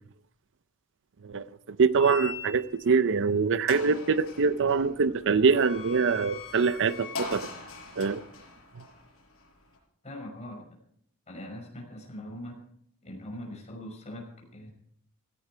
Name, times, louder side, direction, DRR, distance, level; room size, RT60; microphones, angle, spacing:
voice 1, 1.2-7.5 8.0-8.2, right 5 dB, 60° right, 0.6 m, -24 dB
sound 1, 2.0-2.9 3.3-3.4 3.7-9.8, left 4 dB, 65° left, 5.1 m, -42 dB
voice 2, 10.0-10.7 11.3-12.6 13.0-14.7, left 1 dB, 30° left, 5.6 m, -41 dB
16.5 x 16.0 x 4.6 m
head